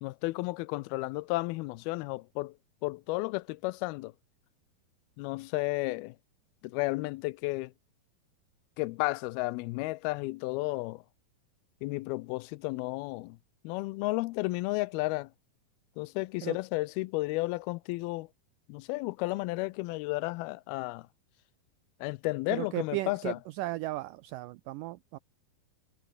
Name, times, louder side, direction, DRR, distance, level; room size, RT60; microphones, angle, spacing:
voice 1, 0.0-4.1 5.2-6.2 6.6-7.7 8.8-11.0 11.8-13.4 13.6-15.3 16.0-18.3 18.7-21.1 22.0-23.4, left 22 dB, 85° left, 2.5 m, -33 dB
voice 2, 22.5-25.2, right 18 dB, 85° right, 1.9 m, -35 dB
omnidirectional pair, 4.3 m